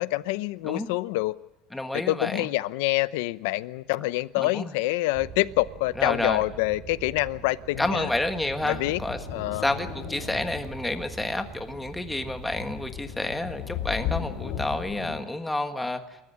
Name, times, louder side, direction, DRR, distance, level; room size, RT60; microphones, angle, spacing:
voice 1, 0.0-1.4 1.9-8.1 8.7-9.0 9.3-9.7, left 19 dB, 85° left, 17 dB, 0.7 m, -26 dB
voice 2, 1.7-2.5 4.4-4.7 6.0-6.4 7.8-9.2 9.5-16.2, left 2 dB, 5° left, 7 dB, 1.5 m, -30 dB
sound 1, 5.1-12.9, right 7 dB, 35° right, 2.8 m, -44 dB
sound 2, 7.7-15.2, left 9 dB, 70° left, 4.2 m, -37 dB
28.0 x 13.5 x 9.6 m, 0.94 s
cardioid pair, 145°, 0 cm